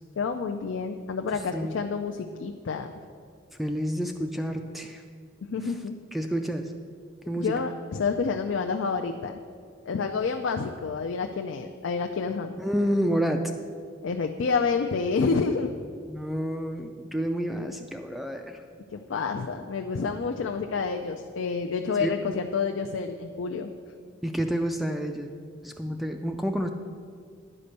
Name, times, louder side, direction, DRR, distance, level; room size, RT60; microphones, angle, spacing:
voice 1, 0.2-2.9 5.5-6.0 7.4-9.4 9.9-12.6 14.0-15.7 18.9-23.7, left 5 dB, 75° left, 4 dB, 0.4 m, -29 dB
voice 2, 3.6-5.0 6.1-6.7 7.3-7.6 12.6-13.5 16.1-18.6 22.0-22.1 24.2-25.3 25.6-26.7, equal, ahead, 5 dB, 0.3 m, -29 dB
9.9 x 5.1 x 6.6 m, 2.1 s
head